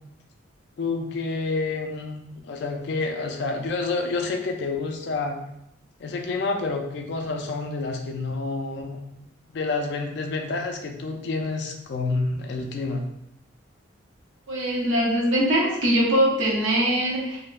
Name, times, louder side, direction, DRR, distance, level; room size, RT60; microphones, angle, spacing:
voice 1, 0.8-5.4 6.0-9.0 9.5-13.0, left 3 dB, 60° left, 4 dB, 0.3 m, -28 dB
voice 2, 14.5-17.4, right 1 dB, 80° right, -3 dB, 0.7 m, -22 dB
2.6 x 2.1 x 2.3 m, 0.81 s
head